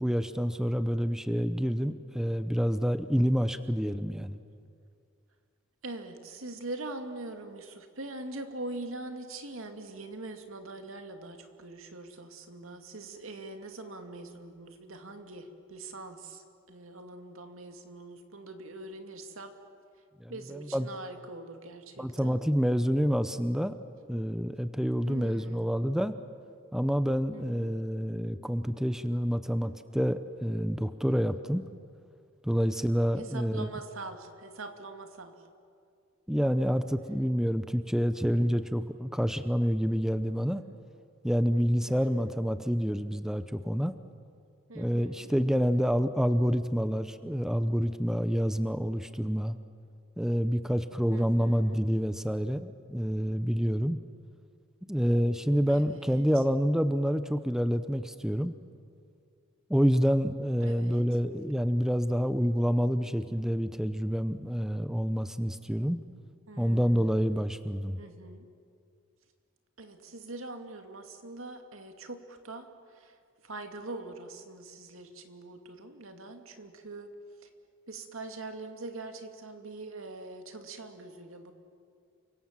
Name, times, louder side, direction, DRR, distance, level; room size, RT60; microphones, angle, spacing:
voice 1, 0.0-4.4 20.2-20.9 22.0-23.7 24.1-26.1 26.7-31.6 32.4-33.7 36.3-40.6 41.2-44.0 44.7-49.6 50.2-54.0 54.9-58.5 59.7-66.0 66.6-68.0, equal, 5° right, 11 dB, 0.6 m, -28 dB
voice 2, 5.8-19.5 20.3-22.4 25.0-25.8 27.3-27.7 33.2-35.5 41.8-42.4 44.7-46.0 51.1-51.8 55.7-56.4 60.6-61.1 66.5-67.3 68.0-68.5 69.8-77.1 77.4-77.5 77.9-81.5, right 2 dB, 80° right, 6 dB, 2.4 m, -43 dB
29.0 x 25.0 x 7.4 m, 2.3 s
head